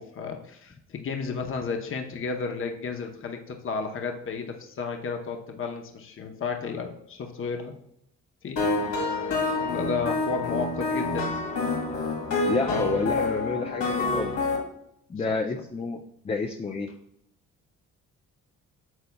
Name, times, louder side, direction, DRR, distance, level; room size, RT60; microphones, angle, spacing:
voice 1, 0.0-7.7 8.4-8.6 9.6-11.3 15.2-15.3, left 5 dB, 45° left, 4 dB, 0.9 m, -32 dB
sound 1, 8.6-14.6, left 3 dB, 75° left, 2.2 m, -27 dB
voice 2, 12.5-14.3 15.1-16.0 16.2-16.9, left 4 dB, 20° left, 4 dB, 0.5 m, -29 dB
8.8 x 6.7 x 2.3 m, 0.73 s
cardioid pair, 90°, 30 cm